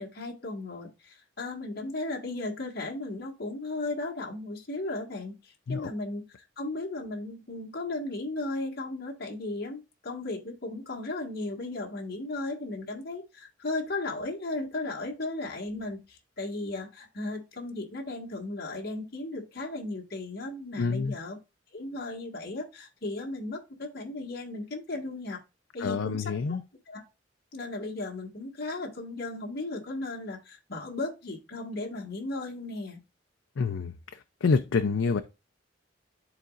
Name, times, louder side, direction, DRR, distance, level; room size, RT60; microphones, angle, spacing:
voice 1, 0.0-21.4 21.7-25.4 25.7-26.6 26.9-27.0 27.5-33.0, left 2 dB, 55° left, 1.7 m, -36 dB
voice 2, 20.8-21.2 25.8-26.6 33.6-33.9 34.4-35.2, left 4 dB, 90° left, 0.5 m, -27 dB
11.5 x 4.1 x 2.4 m
head